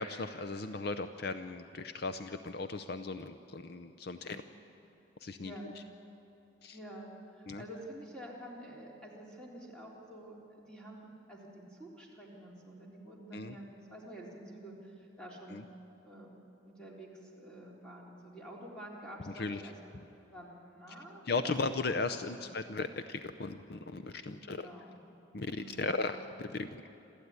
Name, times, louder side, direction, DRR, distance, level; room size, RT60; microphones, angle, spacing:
voice 1, 0.0-4.4 5.2-5.5 6.6-6.8 7.5-7.6 13.3-13.6 15.5-15.6 19.4-19.6 21.3-24.6 25.3-26.9, left 3 dB, 55° left, 10 dB, 0.6 m, -37 dB
voice 2, 4.1-4.5 5.4-5.7 6.7-15.6 16.0-16.3 16.6-19.7 20.3-21.6 22.1-22.4 24.2-25.0 25.5-25.8, right 1 dB, 5° left, -4 dB, 3.8 m, -49 dB
27.5 x 13.5 x 9.6 m, 3.0 s
head